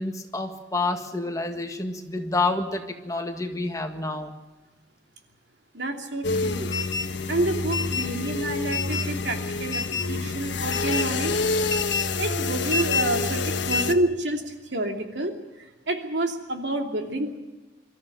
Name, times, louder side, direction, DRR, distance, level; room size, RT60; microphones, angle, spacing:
voice 1, 0.0-4.3, left 3 dB, 20° left, 5 dB, 1.8 m, -28 dB
voice 2, 5.7-6.7 7.3-9.8 10.1-11.4 12.2-17.4, right 1 dB, 75° right, 3 dB, 2.9 m, -28 dB
sound 1, 6.2-13.9, left 4 dB, 80° left, 1.3 m, -27 dB
24.0 x 14.0 x 9.3 m, 1.1 s
head